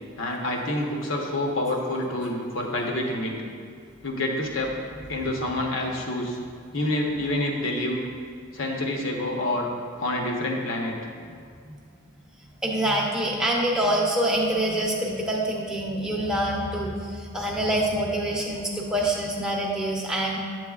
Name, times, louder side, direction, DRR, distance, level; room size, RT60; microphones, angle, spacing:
voice 1, 0.2-3.3 4.0-4.7 5.1-6.4 6.7-8.0 8.5-9.7 10.0-10.9, left 1 dB, 65° left, 0 dB, 1.0 m, -27 dB
voice 2, 12.6-20.4, right 1 dB, 5° right, -3 dB, 0.7 m, -25 dB
8.8 x 7.7 x 2.4 m, 2.2 s
head